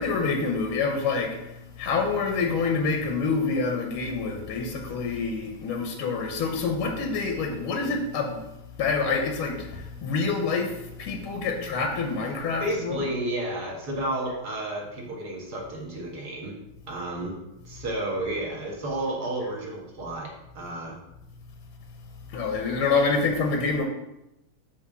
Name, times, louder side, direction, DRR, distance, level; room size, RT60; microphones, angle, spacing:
voice 1, 0.0-8.4 8.8-13.0 22.3-23.8, left 4 dB, 85° left, 3 dB, 1.7 m, -27 dB
voice 2, 12.6-16.5 16.9-17.3 17.7-21.0, right 1 dB, 50° right, -3 dB, 2.1 m, -31 dB
6.9 x 3.4 x 6.0 m, 0.91 s
omnidirectional pair, 2.3 m